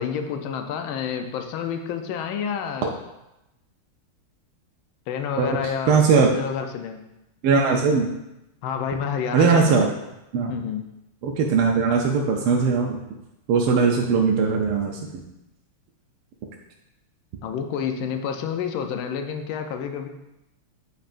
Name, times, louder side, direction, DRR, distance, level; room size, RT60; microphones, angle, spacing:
voice 1, 0.0-2.9 5.1-7.0 8.6-9.8 10.5-10.8 17.4-20.1, left 7 dB, 75° left, 6 dB, 1.4 m, -29 dB
voice 2, 5.4-6.3 7.4-8.1 9.3-9.9 10.3-10.5 11.2-13.0 13.5-15.2, right 5 dB, 85° right, 0 dB, 1.5 m, -20 dB
8.7 x 5.4 x 2.5 m, 0.92 s
omnidirectional pair, 2.4 m